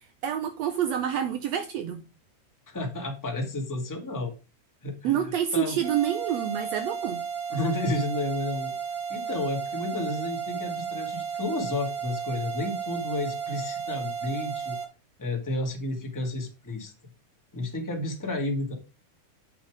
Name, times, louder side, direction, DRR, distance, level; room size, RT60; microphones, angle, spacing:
voice 1, 0.2-2.0 5.0-7.2, right 9 dB, 75° right, 1.7 m, -27 dB
voice 2, 2.7-4.3 4.8-5.8 7.5-8.7 9.1-14.8 15.2-16.9 17.5-18.7, left 2 dB, 10° left, 1.4 m, -31 dB
sound 1, 5.8-14.8, right 7 dB, 50° right, 3.1 m, -33 dB
8.1 x 5.7 x 4.9 m
omnidirectional pair, 3.5 m